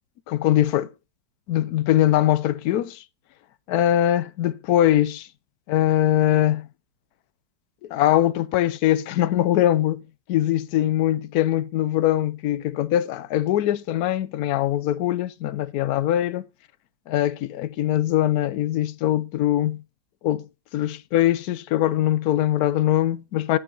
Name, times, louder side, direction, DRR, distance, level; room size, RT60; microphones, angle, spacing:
voice 1, 0.3-0.9 1.5-3.0 3.7-5.3 5.7-6.7 7.8-10.0 10.3-16.5 17.1-19.8 20.2-20.5 20.7-23.6, left 13 dB, 65° left, 1.0 m, -22 dB
9.7 x 8.1 x 3.9 m
omnidirectional pair, 2.0 m